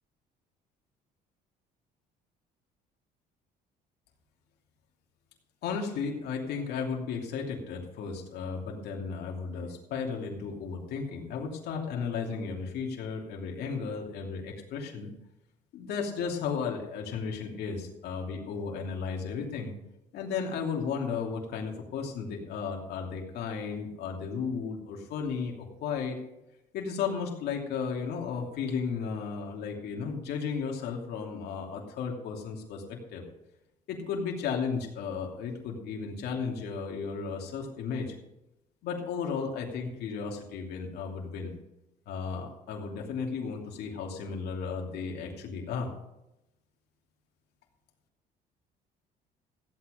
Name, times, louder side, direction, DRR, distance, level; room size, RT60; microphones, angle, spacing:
voice 1, 5.6-15.1 15.7-19.7 20.1-26.2 26.7-33.2 33.9-38.1 38.8-41.5 42.1-45.9, left 5 dB, 75° left, 0 dB, 2.8 m, -34 dB
15.0 x 8.7 x 5.1 m, 0.90 s
cardioid pair, 110°, 17 cm